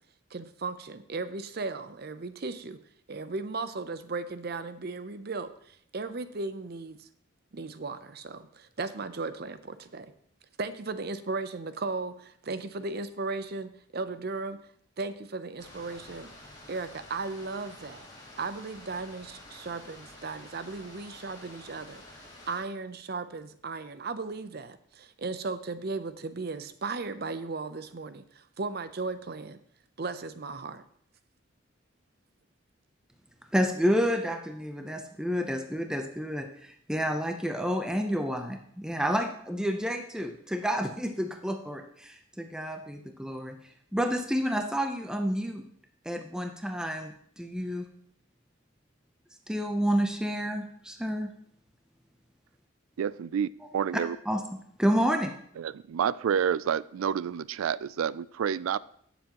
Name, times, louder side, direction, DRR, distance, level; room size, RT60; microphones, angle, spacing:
voice 1, 0.3-2.8 3.1-7.1 7.5-10.1 10.6-14.7 15.0-16.3 16.7-18.1 18.4-29.6 30.0-30.8, right 3 dB, 50° right, 12 dB, 0.6 m, -36 dB
sound 1, 15.6-22.6, left 1 dB, 20° left, 2.3 m, -49 dB
voice 2, 33.5-43.6 43.9-45.6 46.1-47.9 49.5-51.3 54.3-55.3, equal, 5° right, 5 dB, 0.6 m, -30 dB
voice 3, 53.0-54.2 55.6-58.8, right 8 dB, 90° right, 19 dB, 0.3 m, -29 dB
18.0 x 7.0 x 3.0 m, 0.65 s
head